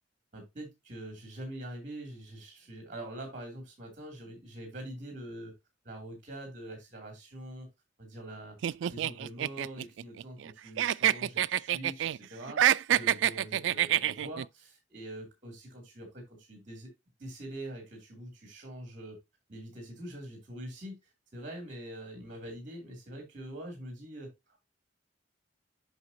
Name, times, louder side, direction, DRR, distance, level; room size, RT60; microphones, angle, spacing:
voice 1, 0.3-5.5 5.8-7.7 8.0-8.6 8.9-16.9 17.2-19.2 19.5-24.6, right 1 dB, 45° right, 2 dB, 2.5 m, -44 dB
sound 1, 8.6-10.5 10.8-12.2 12.5-14.4, right 11 dB, 80° right, 0.3 m, -27 dB
8.1 x 5.7 x 2.7 m, 0.20 s
head